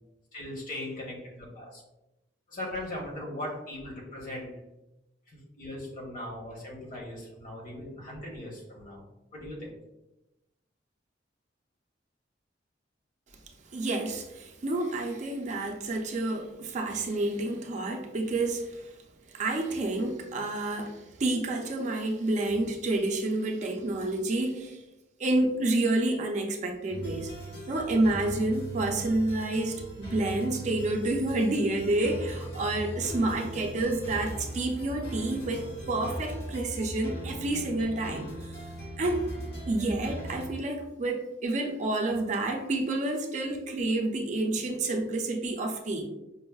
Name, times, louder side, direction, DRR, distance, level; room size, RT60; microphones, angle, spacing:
voice 1, 0.3-1.8 2.5-4.6 5.3-9.0 9.3-9.8, left 1 dB, 50° left, -3 dB, 1.0 m, -39 dB
voice 2, 13.7-18.9 19.3-24.8 25.2-27.3 27.7-38.3 39.0-39.3 39.7-46.1, right 2 dB, 40° right, 2 dB, 0.4 m, -29 dB
sound 1, 26.9-40.5, right 1 dB, 65° left, 1.5 m, -39 dB
5.2 x 2.0 x 2.3 m, 0.94 s
head